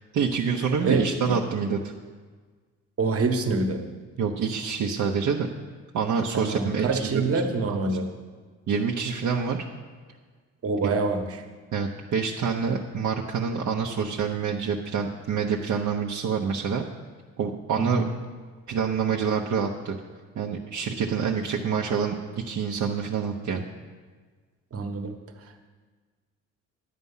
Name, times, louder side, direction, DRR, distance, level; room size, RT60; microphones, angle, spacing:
voice 1, 0.1-1.9 4.2-5.5 5.9-7.2 7.5-7.9 8.7-9.7 11.7-16.8 17.4-18.0 18.7-20.0 20.3-23.7, right 6 dB, 65° right, 0 dB, 0.9 m, -27 dB
voice 2, 0.8-1.4 3.0-3.8 6.3-8.1 10.6-11.4 17.8-18.1 24.7-25.2, right 3 dB, 50° right, 6 dB, 1.3 m, -26 dB
10.5 x 8.2 x 5.6 m, 1.5 s
cardioid pair, 90°, 30 cm